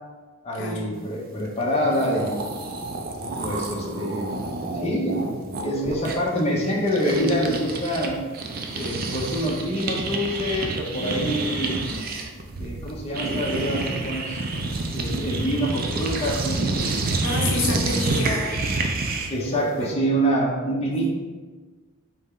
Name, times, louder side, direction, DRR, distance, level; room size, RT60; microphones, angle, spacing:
voice 1, 0.4-2.5 3.2-4.3 4.7-8.2 8.7-12.0 12.6-14.4 14.9-17.0 19.3-21.1, equal, 30° left, -3 dB, 0.7 m, -26 dB
sound 1, 1.6-1.7 1.9-8.1 8.3-19.4, right 3 dB, 45° right, 0.5 m, -28 dB
voice 2, 17.2-18.6 19.8-19.9 20.8-21.1, left 3 dB, 60° left, -1 dB, 0.7 m, -29 dB
4.3 x 3.3 x 3.7 m, 1.3 s
head